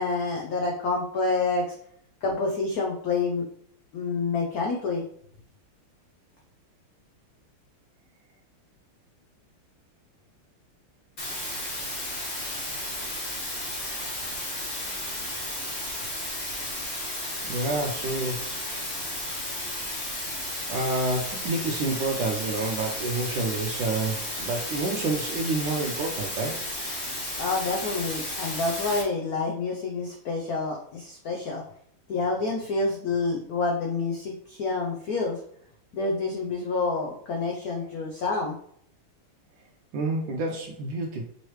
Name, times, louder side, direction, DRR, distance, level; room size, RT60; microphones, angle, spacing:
voice 1, 0.0-1.7 2.2-3.4 3.9-5.0 27.4-31.6 32.1-35.4 35.9-38.6, left 3 dB, 85° left, 0 dB, 0.8 m, -28 dB
sound 1, 11.2-29.0, left 1 dB, 30° left, 1.1 m, -33 dB
voice 2, 17.5-18.5 20.7-26.6 39.9-41.2, right 2 dB, 75° right, 0 dB, 1.2 m, -28 dB
5.5 x 3.2 x 3.0 m, 0.66 s
omnidirectional pair, 2.4 m